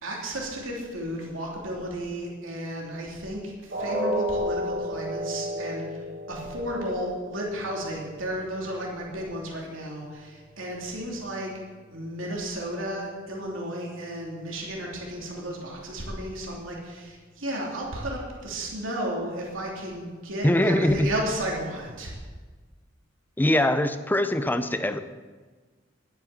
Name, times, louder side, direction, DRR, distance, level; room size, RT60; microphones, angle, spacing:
voice 1, 0.0-11.5 11.9-22.2, right 1 dB, 85° right, -2 dB, 2.9 m, -33 dB
sound 1, 3.7-9.7 10.1-10.3 10.7-10.8, equal, 65° right, 3.8 m, -33 dB
voice 2, 20.4-21.1 23.4-25.0, left 1 dB, 10° left, 10 dB, 0.6 m, -22 dB
11.5 x 9.4 x 7.6 m, 1.4 s
head